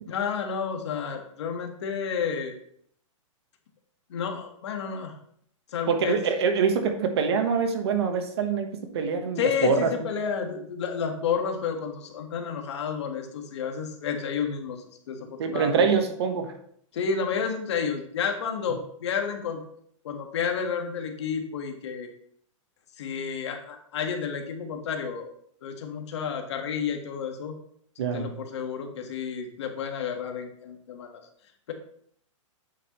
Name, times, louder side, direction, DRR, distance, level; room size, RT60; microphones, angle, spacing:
voice 1, 0.0-2.5 4.1-5.1 5.7-6.2 9.4-15.8 16.9-19.6 20.0-22.1 23.0-25.3 25.6-27.5 28.1-31.2, left 6 dB, 60° left, 4 dB, 1.5 m, -31 dB
voice 2, 5.9-9.9 15.4-16.5 28.0-28.3, right 6 dB, 50° right, 6 dB, 1.2 m, -25 dB
8.9 x 6.5 x 3.0 m, 0.66 s
hypercardioid pair, 170°, 17 cm